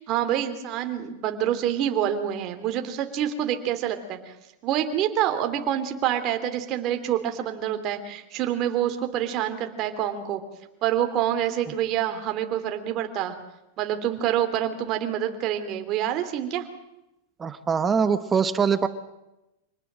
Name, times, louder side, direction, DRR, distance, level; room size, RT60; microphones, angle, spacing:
voice 1, 0.0-4.3 4.6-10.4 10.8-13.3 13.8-16.7, right 10 dB, 40° right, 6 dB, 3.2 m, -27 dB
voice 2, 17.4-18.9, right 6 dB, 20° right, 11 dB, 1.2 m, -23 dB
26.0 x 19.5 x 7.6 m, 0.93 s
supercardioid pair, 135°, 0 cm